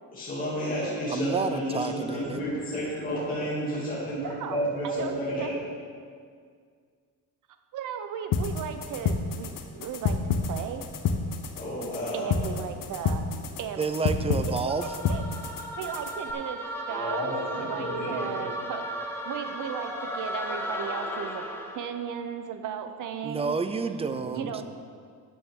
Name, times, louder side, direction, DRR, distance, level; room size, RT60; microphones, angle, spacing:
voice 1, 0.1-5.6 11.6-12.3 16.9-18.5 24.2-24.5, equal, 25° left, -8 dB, 2.5 m, -31 dB
voice 2, 1.1-2.4 13.8-14.9 23.2-24.6, right 4 dB, 15° right, 9 dB, 0.4 m, -29 dB
voice 3, 4.2-5.5 7.7-10.2 10.5-10.8 12.1-13.3 13.6-14.1 15.1-15.2 15.8-16.6 16.9-18.8 19.2-23.6 24.3-24.6, right 8 dB, 60° right, 8 dB, 0.7 m, -36 dB
sound 1, 8.3-16.3, left 5 dB, 60° left, 0.9 m, -30 dB
sound 2, 14.7-21.9, equal, 5° left, 0.8 m, -35 dB
13.5 x 9.3 x 3.7 m, 2.1 s
cardioid pair, 160°, 36 cm